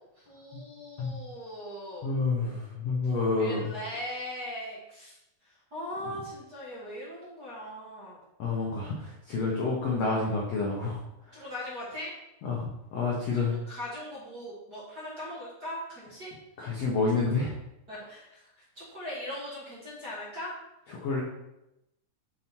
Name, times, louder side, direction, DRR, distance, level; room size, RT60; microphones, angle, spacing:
voice 1, 0.2-2.1 3.0-5.2 5.4-8.2 11.3-12.1 13.3-16.3 17.9-20.5, left 1 dB, 35° right, -8 dB, 1.8 m, -40 dB
voice 2, 2.0-3.7 8.4-11.0 11.3-11.4 12.4-13.5 16.6-17.5 21.0-21.2, left 3 dB, 70° left, -3 dB, 1.6 m, -29 dB
7.6 x 4.1 x 4.4 m, 0.88 s
omnidirectional pair, 4.2 m